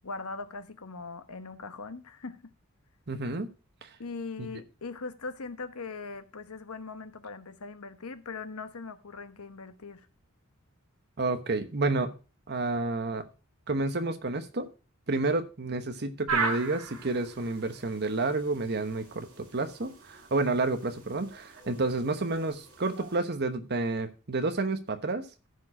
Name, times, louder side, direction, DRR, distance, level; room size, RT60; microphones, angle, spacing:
voice 1, 0.0-2.4 4.0-10.1, left 4 dB, 85° left, 1.0 m, -40 dB
voice 2, 3.1-3.5 3.8-3.9 4.4-4.5 11.2-12.1 12.5-13.2 13.7-14.7 15.1-25.3, right 3 dB, 50° right, 1.1 m, -30 dB
sound 1, 16.3-23.2, right 4 dB, 85° right, 3.4 m, -38 dB
14.5 x 4.8 x 4.9 m
head